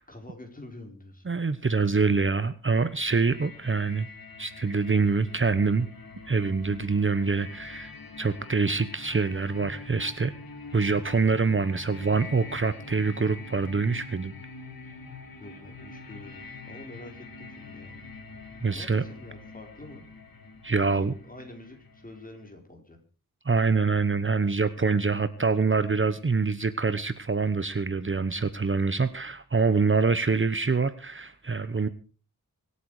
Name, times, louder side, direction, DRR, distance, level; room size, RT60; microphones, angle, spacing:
voice 1, 0.1-1.2 4.6-4.7 15.4-18.1 18.6-20.0 20.8-23.0, left 1 dB, 25° left, 3 dB, 4.2 m, -46 dB
voice 2, 1.3-4.1 4.4-5.9 6.3-7.9 8.2-10.3 10.7-14.3 18.6-19.0 20.6-21.1 23.4-31.9, right 4 dB, 35° right, 13 dB, 1.0 m, -25 dB
sound 1, 2.8-22.5, left 3 dB, 85° left, 2.8 m, -45 dB
25.0 x 8.5 x 4.8 m, 0.36 s
wide cardioid pair, 100°, 34 cm